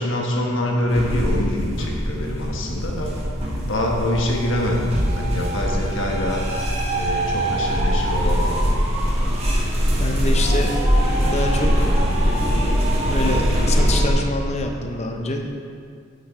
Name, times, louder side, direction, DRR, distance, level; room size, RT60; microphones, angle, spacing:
voice 1, 0.0-3.1 3.7-6.4 6.9-8.6, left 1 dB, 70° left, 0 dB, 1.5 m, -25 dB
sound 1, 0.9-14.1, equal, 30° right, 1.7 m, -22 dB
voice 2, 10.0-10.8 11.2-11.9 13.1-15.5, left 2 dB, 35° left, 3 dB, 0.7 m, -26 dB
9.6 x 6.7 x 4.8 m, 2.2 s
head